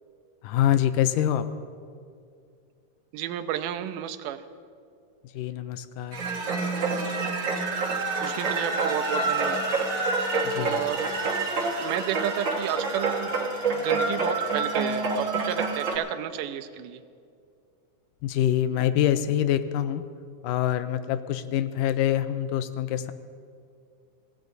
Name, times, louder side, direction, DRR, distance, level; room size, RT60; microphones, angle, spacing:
voice 1, 0.4-1.5 5.4-6.2 10.4-10.8 18.2-20.0 20.4-23.1, left 11 dB, 90° left, 11 dB, 2.2 m, -25 dB
voice 2, 3.1-4.4 8.2-9.7 10.5-11.1 11.8-13.3 13.7-17.0, right 11 dB, 85° right, 8 dB, 2.2 m, -31 dB
sound 1, 6.1-16.0, right 3 dB, 45° right, 1.7 m, -27 dB
23.5 x 16.5 x 2.7 m, 2.3 s
omnidirectional pair, 3.7 m